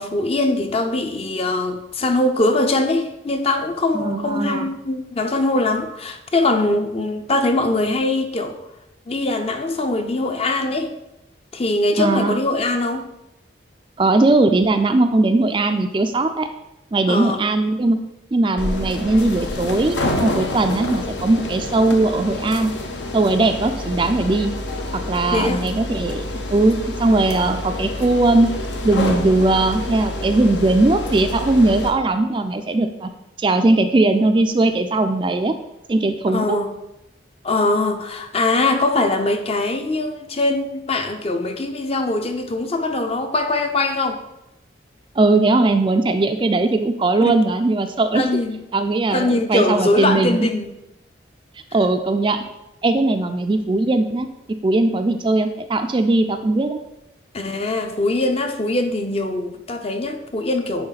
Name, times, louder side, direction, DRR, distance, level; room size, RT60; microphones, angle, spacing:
voice 1, 0.0-8.6 9.1-10.9 11.5-13.0 17.1-17.4 25.3-25.7 36.3-36.8 37.4-44.2 47.2-47.4 48.1-48.6 49.1-50.7 57.3-60.9, left 2 dB, 35° left, 6 dB, 0.6 m, -22 dB
voice 2, 3.9-4.7 12.0-12.4 14.0-16.5 16.9-18.0 18.3-22.7 23.1-24.5 24.9-26.2 26.5-28.5 28.8-33.1 33.4-35.6 35.9-36.6 45.2-48.3 48.7-50.5 51.7-52.4 52.8-54.3 54.6-56.8, right 2 dB, 25° right, 7 dB, 0.3 m, -19 dB
sound 1, 18.6-31.9, left 1 dB, 75° left, 0.9 m, -28 dB
9.5 x 3.6 x 4.0 m, 0.90 s
head